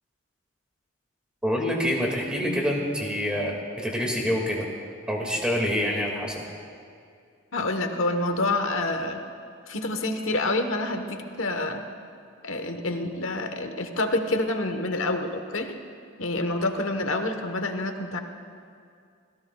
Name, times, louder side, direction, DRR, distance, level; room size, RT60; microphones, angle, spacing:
voice 1, 1.4-4.7 5.1-6.4, equal, 5° right, -1 dB, 2.0 m, -26 dB
voice 2, 7.5-9.2 9.7-11.8 12.4-15.8 16.2-18.2, left 2 dB, 70° left, 6 dB, 1.2 m, -27 dB
26.5 x 17.0 x 2.3 m, 2.3 s
head